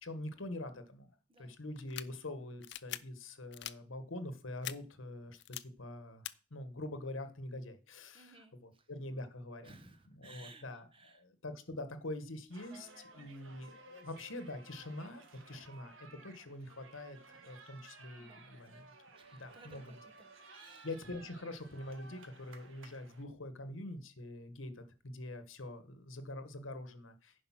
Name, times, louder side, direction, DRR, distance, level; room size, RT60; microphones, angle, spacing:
voice 1, 0.0-1.1 1.4-9.7 10.2-12.9 13.1-18.8 19.4-19.8 20.8-27.4, left 1 dB, 85° left, 10 dB, 1.3 m, -45 dB
sound 1, 1.8-2.0 2.6-3.0 3.5-3.7 4.6-4.7 5.4-5.6 6.2-6.3, left 13 dB, 55° left, 0.5 m, -41 dB
voice 2, 8.1-8.9 9.6-11.2 12.7-13.4 18.2-18.9 19.2-20.9, right 3 dB, 25° right, 8 dB, 1.0 m, -59 dB
sound 2, 12.5-23.2, right 3 dB, 85° right, 1.7 m, -57 dB
10.5 x 5.3 x 5.8 m, 0.38 s
head